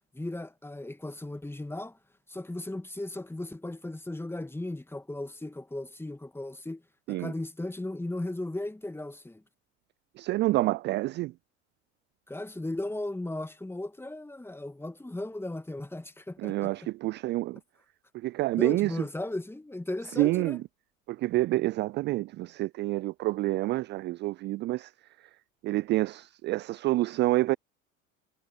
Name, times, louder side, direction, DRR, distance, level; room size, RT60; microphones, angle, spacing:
voice 1, 0.1-2.0 2.3-6.8 7.1-9.4 12.3-16.7 18.6-20.6, left 1 dB, 5° left, 2.2 m, -36 dB
voice 2, 10.2-11.3 16.4-17.6 18.1-19.0 20.1-20.6 21.1-24.9 25.6-27.6, right 18 dB, 30° right, 0.4 m, -28 dB
figure-of-eight pair, 75°, 40 cm